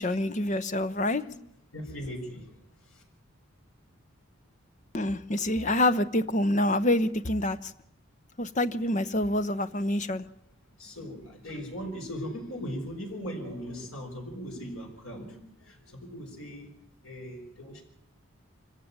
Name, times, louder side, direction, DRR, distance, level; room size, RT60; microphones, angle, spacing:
voice 1, 0.0-1.2 4.9-7.7 8.4-10.2, left 1 dB, 35° left, 0.8 m, -26 dB
voice 2, 1.7-2.6 2.9-3.0 10.8-16.7 17.0-17.8, equal, 75° left, 6.0 m, -39 dB
24.5 x 15.0 x 8.9 m
head